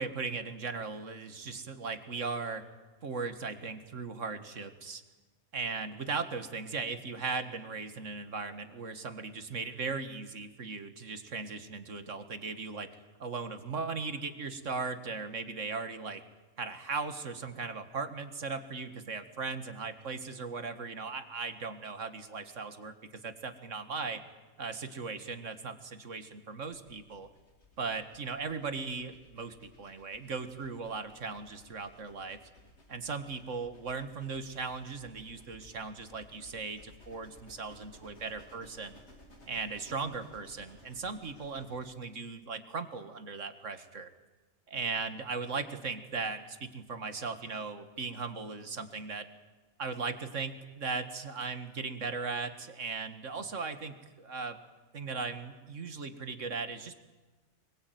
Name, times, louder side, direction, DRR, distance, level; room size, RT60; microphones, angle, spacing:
voice 1, 0.0-2.6 3.0-5.0 5.5-12.9 13.2-16.2 16.6-24.2 24.6-27.3 27.8-32.4 32.9-39.0 39.5-44.1 44.7-49.3 49.8-54.6 54.9-56.9, right 4 dB, 75° right, 10 dB, 2.1 m, -38 dB
sound 1, 26.7-41.9, left 1 dB, 60° left, 3.8 m, -59 dB
25.0 x 22.0 x 9.3 m, 1.2 s
omnidirectional pair, 1.3 m